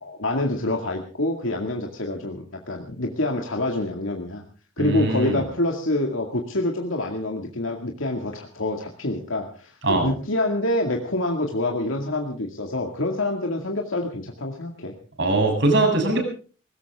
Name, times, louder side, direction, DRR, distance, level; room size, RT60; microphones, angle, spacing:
voice 1, 0.0-4.4 4.8-14.9, left 1 dB, 80° left, 1 dB, 2.2 m, -26 dB
voice 2, 4.8-5.4 9.8-10.1 15.2-16.2, right 2 dB, 60° right, 4 dB, 7.5 m, -21 dB
20.5 x 18.5 x 3.6 m, 0.38 s
head